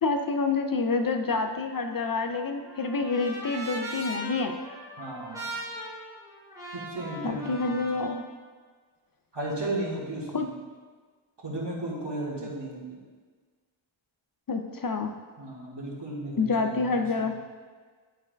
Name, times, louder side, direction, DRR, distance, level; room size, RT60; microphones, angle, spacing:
voice 1, 0.0-4.6 7.2-8.3 10.3-10.5 14.5-15.1 16.4-17.4, left 4 dB, 45° left, 5 dB, 0.5 m, -27 dB
Trumpet, 1.9-8.2, right 1 dB, 5° right, 1.4 m, -40 dB
voice 2, 5.0-5.5 6.7-7.9 9.3-10.5 11.4-13.0 15.4-17.3, right 1 dB, 60° right, -5 dB, 1.7 m, -35 dB
10.5 x 4.5 x 2.2 m, 1.5 s
wide cardioid pair, 60°, 47 cm